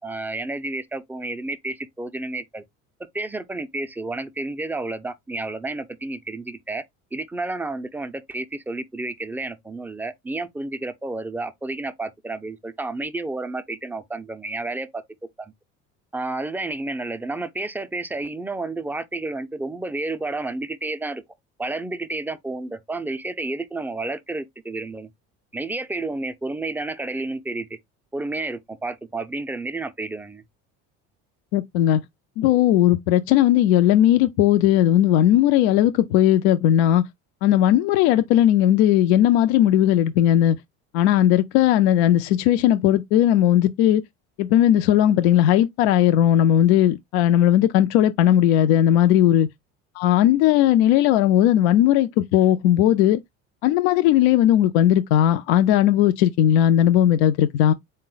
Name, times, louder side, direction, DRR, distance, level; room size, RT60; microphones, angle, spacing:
voice 1, 0.0-2.6 3.1-6.8 7.1-15.0 15.4-15.5 16.1-21.2 21.6-25.1 25.5-27.7 28.1-30.4, right 2 dB, 5° right, 0.4 m, -31 dB
voice 2, 31.5-32.0 32.4-37.0 37.4-40.6 40.9-44.0 44.4-49.5 50.0-53.2 53.6-57.7, left 11 dB, 80° left, 0.5 m, -17 dB
4.0 x 2.1 x 3.8 m
supercardioid pair, 95°, 32 cm